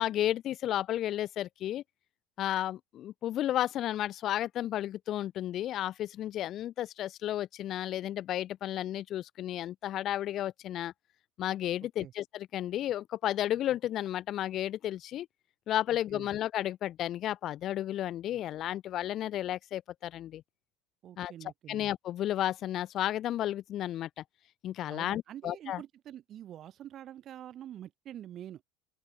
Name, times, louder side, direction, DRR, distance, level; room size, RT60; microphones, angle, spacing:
voice 1, 0.0-1.8 2.4-10.9 11.4-15.3 15.7-20.4 21.2-21.3 21.7-24.2 24.6-25.8, left 12 dB, 45° left, 0.7 m, -33 dB
voice 2, 15.9-16.3 21.0-21.8 24.9-28.6, right 11 dB, 40° right, 4.9 m, -46 dB
open air
cardioid pair, 135°, 0 cm